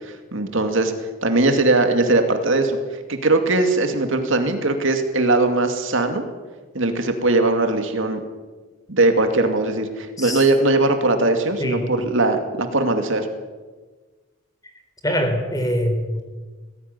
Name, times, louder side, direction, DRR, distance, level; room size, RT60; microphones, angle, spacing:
voice 1, 0.3-0.9 1.2-2.8 3.1-6.3 6.7-8.2 8.9-13.3, right 2 dB, 65° right, 6 dB, 2.4 m, -20 dB
voice 2, 15.0-16.2, equal, 15° left, 5 dB, 3.8 m, -23 dB
20.0 x 15.5 x 9.7 m, 1.3 s
head